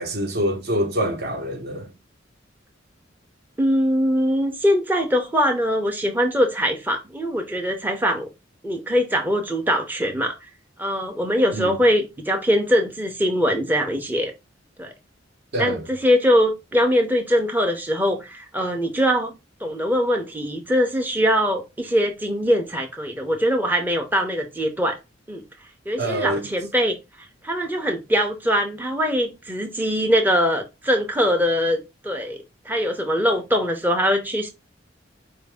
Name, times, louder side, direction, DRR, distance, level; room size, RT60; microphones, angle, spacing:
voice 1, 0.0-1.9 11.5-11.8 15.5-15.9 26.0-26.5, equal, 55° right, 0.8 m, -25 dB
voice 2, 3.6-8.3 8.6-10.4 10.8-14.3 14.8-14.9 15.6-19.3 19.6-25.0 25.3-25.4 25.9-26.9 27.4-32.4 32.7-34.5, equal, 10° right, 0.5 m, -22 dB
4.7 x 2.6 x 3.3 m
head